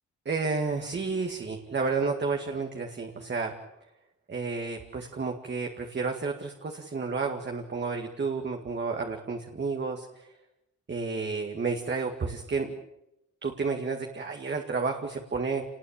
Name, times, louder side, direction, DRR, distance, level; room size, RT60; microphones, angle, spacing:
voice 1, 0.3-3.5 4.3-10.3 10.9-12.7 13.4-15.6, right 4 dB, 35° right, 2 dB, 2.0 m, -31 dB
30.0 x 19.5 x 8.7 m, 0.91 s
wide cardioid pair, 170°, 30 cm